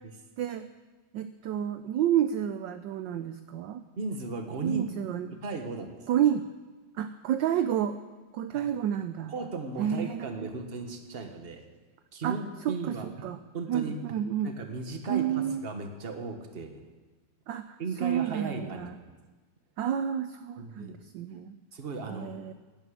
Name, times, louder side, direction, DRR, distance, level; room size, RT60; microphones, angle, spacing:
voice 1, 0.4-0.7 1.1-3.8 4.6-5.4 6.1-6.4 6.9-8.0 8.3-9.3 9.8-10.5 12.2-12.4 12.6-13.4 13.7-14.5 15.1-15.6 17.5-18.9 19.8-21.6 22.1-22.5, right 10 dB, 70° right, 10 dB, 1.2 m, -30 dB
voice 2, 4.0-4.8 5.3-6.1 8.5-8.7 9.3-11.6 12.1-13.1 13.5-13.9 14.4-16.8 17.8-19.0 20.6-21.0 21.7-22.3, right 4 dB, 30° right, 5 dB, 1.4 m, -36 dB
12.0 x 10.5 x 9.2 m, 1.3 s
omnidirectional pair, 2.4 m